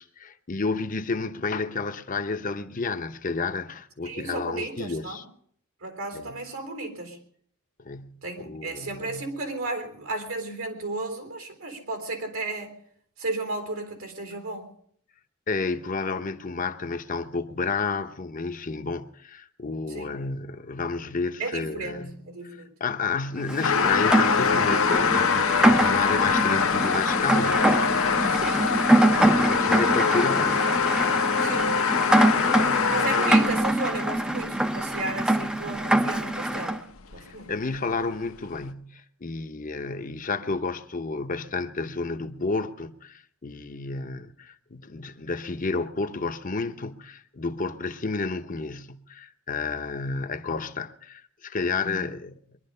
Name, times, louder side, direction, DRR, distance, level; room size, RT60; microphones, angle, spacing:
voice 1, 0.0-5.2 6.1-6.4 7.8-9.3 15.5-22.3 22.8-27.7 29.0-30.6 32.2-33.0 37.2-52.6, left 4 dB, 40° left, 0.8 m, -31 dB
voice 2, 4.1-5.2 5.8-7.2 8.2-12.7 13.2-14.7 19.9-20.2 21.4-22.7 28.3-28.7 29.2-29.5 31.4-32.0 32.9-36.8 37.1-37.5 51.8-52.1, right 2 dB, 80° right, 3.8 m, -34 dB
Rain, 23.5-36.8, right 1 dB, 5° right, 0.6 m, -24 dB
sound 1, 23.6-33.7 34.4-34.5 36.1-36.2 36.6-36.7 37.1-37.2 37.7-37.8, left 6 dB, 70° left, 0.8 m, -24 dB
23.0 x 11.5 x 5.5 m
head